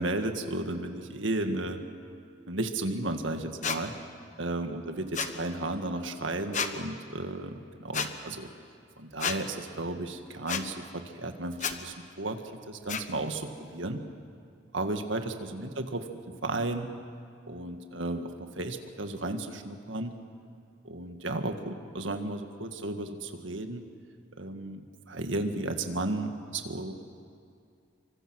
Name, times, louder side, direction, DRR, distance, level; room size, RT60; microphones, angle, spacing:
voice 1, 0.0-1.8 2.5-3.9 4.4-8.5 9.0-12.4 12.7-14.0 14.7-16.1 16.4-16.9 17.5-20.1 20.8-23.8 24.4-26.9, right 2 dB, 75° right, 6 dB, 1.8 m, -34 dB
sound 1, 3.6-3.8 5.1-5.3 6.5-6.7 7.9-8.1 9.2-9.4 10.5-10.6 11.6-11.7 12.9-13.0, left 6 dB, 40° left, 1.2 m, -30 dB
27.0 x 24.5 x 6.4 m, 2.5 s
head